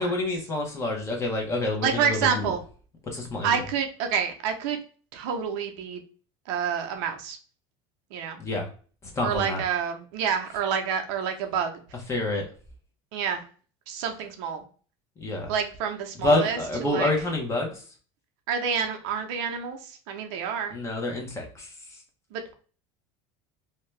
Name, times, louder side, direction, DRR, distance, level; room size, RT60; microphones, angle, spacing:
voice 1, 0.0-2.5 3.1-3.6 8.4-8.7 9.0-9.6 12.1-12.5 15.2-15.5 16.2-17.8 20.7-22.0, left 2 dB, 20° left, 0 dB, 0.9 m, -28 dB
voice 2, 1.8-2.6 3.4-4.8 5.1-6.0 6.5-7.4 8.1-8.4 9.2-11.8 13.1-13.4 13.9-14.6 15.5-17.1 18.5-20.8 22.3-22.5, right 7 dB, 70° right, 4 dB, 0.7 m, -28 dB
2.7 x 2.2 x 3.2 m, 0.40 s
supercardioid pair, 135°, 15 cm